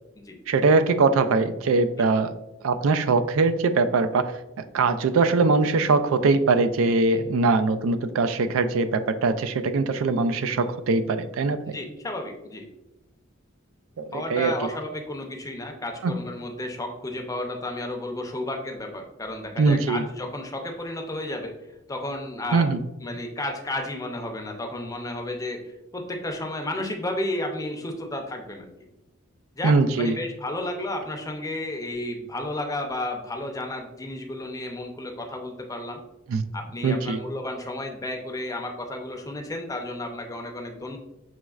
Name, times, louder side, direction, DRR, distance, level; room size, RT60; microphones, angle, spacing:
voice 1, 0.5-2.4 2.6-4.3 4.7-11.8 14.0-14.7 16.0-16.1 19.6-20.0 22.5-22.8 29.6-30.2 36.3-36.4 36.8-37.2, right 3 dB, 85° right, 10 dB, 0.4 m, -22 dB
voice 2, 11.7-12.7 14.1-21.5 21.9-22.7 23.0-28.7 29.5-36.0 36.5-41.0, left 1 dB, 15° left, 3 dB, 0.5 m, -32 dB
6.1 x 3.1 x 2.3 m, 0.94 s
head